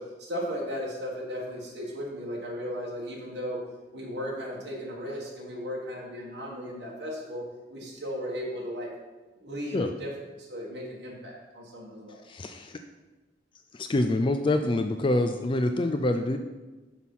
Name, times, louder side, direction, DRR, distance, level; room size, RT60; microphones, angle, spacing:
voice 1, 0.0-3.6 3.9-8.9 9.4-10.1 10.4-12.2, equal, 65° right, -4 dB, 1.6 m, -36 dB
voice 2, 12.2-12.8 13.7-16.4, left 2 dB, 30° left, 6 dB, 0.4 m, -26 dB
6.3 x 5.8 x 5.5 m, 1.2 s
head